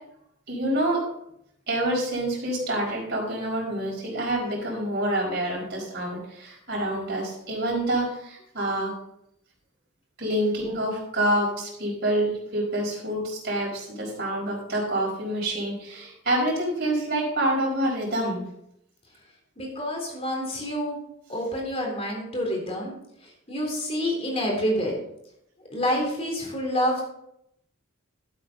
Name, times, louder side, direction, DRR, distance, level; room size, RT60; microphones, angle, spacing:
voice 1, 0.5-1.0 1.7-8.9 10.2-18.5, right 1 dB, 50° right, -4 dB, 4.7 m, -27 dB
voice 2, 19.6-21.0 21.3-22.9 23.2-24.9 25.7-27.0, equal, 30° left, -1 dB, 3.5 m, -28 dB
12.0 x 8.6 x 3.8 m, 0.76 s
head